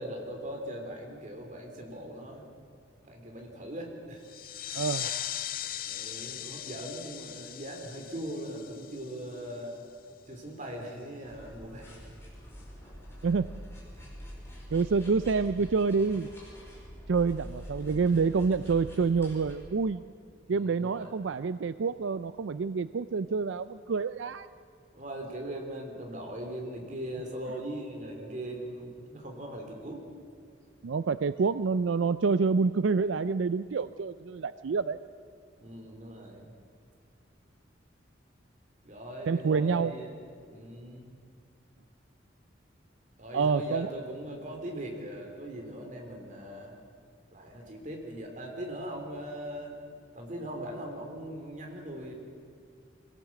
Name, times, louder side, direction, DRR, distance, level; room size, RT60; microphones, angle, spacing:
voice 1, 0.0-2.4 3.0-4.2 4.5-4.8 5.9-9.7 10.2-11.9 13.9-14.0 20.5-21.1 24.9-30.0 35.6-36.5 38.8-40.1 40.5-41.2 43.2-46.7 47.3-49.7 50.1-52.1, right 1 dB, 40° right, 1 dB, 3.5 m, -40 dB
sound 1, 4.2-9.6, left 11 dB, 50° left, 0.6 m, -39 dB
voice 2, 4.7-5.1 13.2-13.4 14.7-16.3 17.1-20.0 20.5-24.5 30.8-35.0 39.3-39.9 43.3-43.9, right 5 dB, 85° right, 14 dB, 0.4 m, -27 dB
sound 2, 11.2-19.5, equal, 15° left, 5.3 m, -46 dB
24.0 x 17.5 x 7.5 m, 2.2 s
head